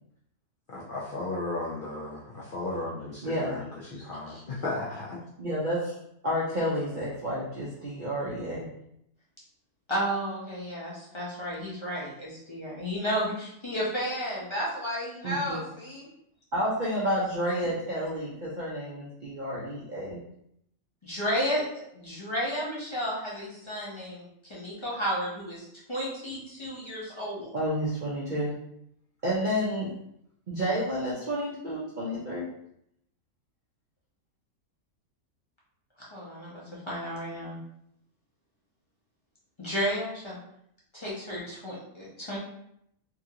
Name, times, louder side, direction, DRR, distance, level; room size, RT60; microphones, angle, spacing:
voice 1, 0.7-5.2, left 2 dB, 75° left, -5 dB, 0.4 m, -35 dB
voice 2, 3.2-3.6 5.4-6.0 6.2-8.6 15.2-15.6 16.5-20.2 27.5-28.5 29.2-29.9 30.5-32.5, equal, 55° right, -7 dB, 0.5 m, -30 dB
voice 3, 9.9-16.1 21.0-21.6 21.9-27.5 36.0-37.6 39.6-40.4 40.9-42.4, equal, 30° left, -7 dB, 0.6 m, -32 dB
2.9 x 2.4 x 2.8 m, 0.74 s
omnidirectional pair, 1.5 m